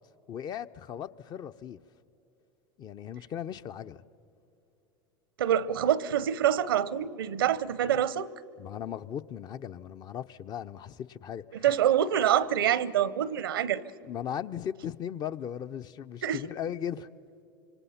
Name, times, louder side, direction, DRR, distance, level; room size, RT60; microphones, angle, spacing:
voice 1, 0.3-1.8 2.8-4.0 8.6-11.6 14.1-17.1, left 9 dB, 35° left, 12 dB, 0.6 m, -37 dB
voice 2, 5.4-8.3 11.5-13.8 16.2-16.4, right 10 dB, 80° right, 20 dB, 0.7 m, -26 dB
26.5 x 24.5 x 5.7 m, 2.9 s
hypercardioid pair, 90°, 12 cm